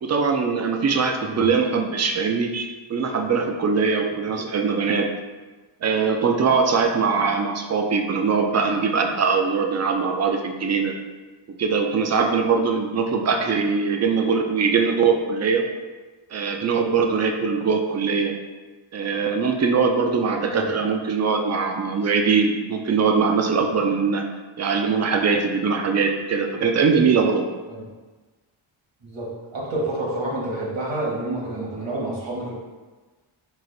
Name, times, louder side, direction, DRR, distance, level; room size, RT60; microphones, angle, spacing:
voice 1, 0.0-5.1 5.8-10.9 11.6-15.6 16.3-18.3 18.9-24.3 24.6-27.4, right 5 dB, 35° right, 4 dB, 0.4 m, -22 dB
voice 2, 29.0-32.5, right 1 dB, 65° right, -4 dB, 1.4 m, -29 dB
4.8 x 2.5 x 3.8 m, 1.3 s
wide cardioid pair, 175°, 48 cm